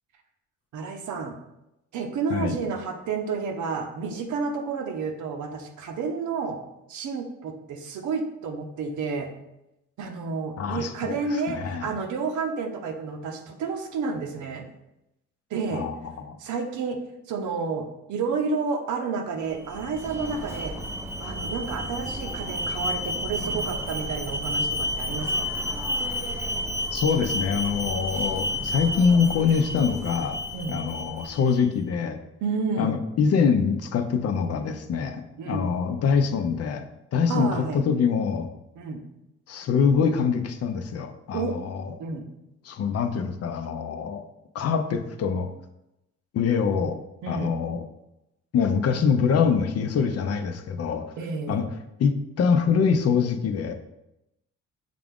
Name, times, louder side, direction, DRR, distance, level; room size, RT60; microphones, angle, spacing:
voice 1, 0.7-1.4 1.9-6.6 6.9-9.3 10.0-14.6 15.5-15.9 16.4-17.0 17.3-20.7 21.2-25.5 30.5-30.8 32.4-33.0 35.4-35.7 37.3-37.8 38.8-39.0 41.3-41.5 42.0-42.3 47.2-47.5 51.2-51.6, right 4 dB, 80° right, 5 dB, 0.7 m, -30 dB
voice 2, 10.6-11.2 11.5-11.8 15.7-16.0 16.3-16.4 26.9-30.4 30.7-32.2 32.8-36.9 37.1-38.5 39.5-41.9 42.7-44.2 44.5-45.5 46.3-47.0 47.3-47.8 48.5-51.1 51.5-51.7 52.0-53.7, left 6 dB, 55° left, 7 dB, 0.6 m, -24 dB
Alarm, 19.5-31.6, left 1 dB, 10° right, 0.5 m, -31 dB
5.8 x 2.5 x 3.5 m, 0.89 s
cardioid pair, 90°, 30 cm